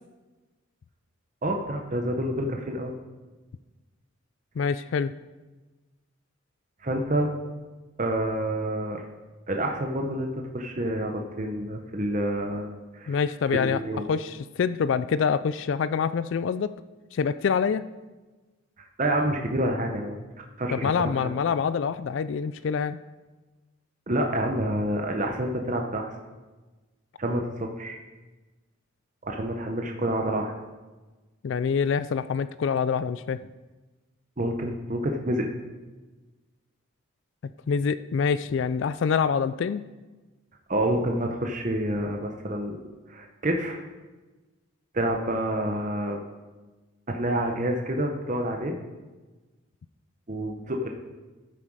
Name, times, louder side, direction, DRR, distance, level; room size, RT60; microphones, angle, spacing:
voice 1, 1.4-2.9 6.8-7.3 8.0-9.0 9.5-13.2 13.5-14.0 19.0-20.2 20.6-21.1 24.1-26.1 27.2-28.0 29.2-30.5 34.4-35.5 40.7-43.8 44.9-46.2 47.1-48.7 50.3-50.9, right 1 dB, 35° right, 2 dB, 0.9 m, -28 dB
voice 2, 4.6-5.1 13.1-13.8 14.1-16.7 17.1-17.8 20.7-23.0 31.4-33.4 37.7-39.8, left 6 dB, 60° left, 14 dB, 0.3 m, -26 dB
13.0 x 7.5 x 4.8 m, 1.2 s
head